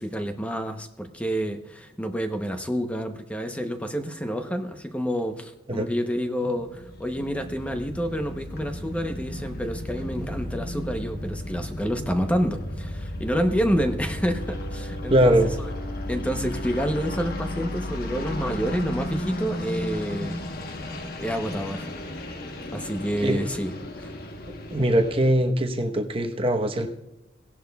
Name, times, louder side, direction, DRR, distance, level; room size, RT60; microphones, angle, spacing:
voice 1, 0.0-15.7 16.1-20.4 20.7-21.9 22.7-24.1, equal, 5° left, 6 dB, 0.8 m, -28 dB
sound 1, 6.5-25.3, left 1 dB, 55° left, 1.2 m, -34 dB
voice 2, 15.1-15.5 23.2-23.4 24.7-26.9, right 1 dB, 30° right, 4 dB, 1.0 m, -21 dB
17.5 x 11.0 x 2.3 m, 0.94 s
head